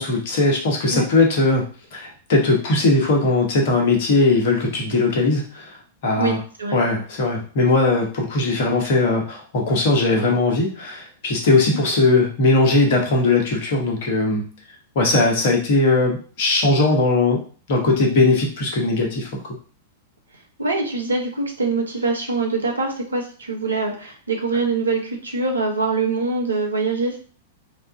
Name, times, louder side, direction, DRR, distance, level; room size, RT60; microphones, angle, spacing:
voice 1, 0.0-1.6 1.9-5.8 6.0-6.4 6.7-14.4 14.9-17.4 17.7-19.4, left 2 dB, 50° left, 0 dB, 1.1 m, -19 dB
voice 2, 6.1-6.8 20.6-27.2, right 3 dB, 80° right, 1 dB, 0.9 m, -24 dB
3.5 x 2.5 x 3.6 m, 0.40 s
figure-of-eight pair, 100°, 0 cm